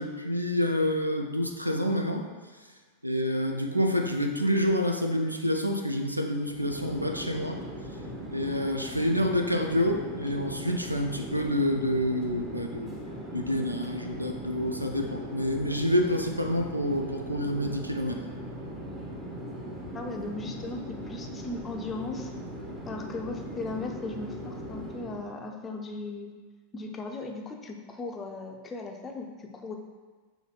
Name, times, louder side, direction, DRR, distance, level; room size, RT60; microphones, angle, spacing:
voice 1, 0.0-2.3 3.0-7.6 8.3-18.2, equal, 85° right, 4 dB, 0.4 m, -28 dB
Chatter / Fixed-wing aircraft airplane, 6.4-25.3, equal, 10° right, 0.8 m, -39 dB
voice 2, 19.9-22.3 22.9-26.3 26.7-29.7, left 3 dB, 20° left, 2 dB, 0.5 m, -37 dB
6.4 x 2.6 x 3.1 m, 1.4 s
figure-of-eight pair, 90°, 0 cm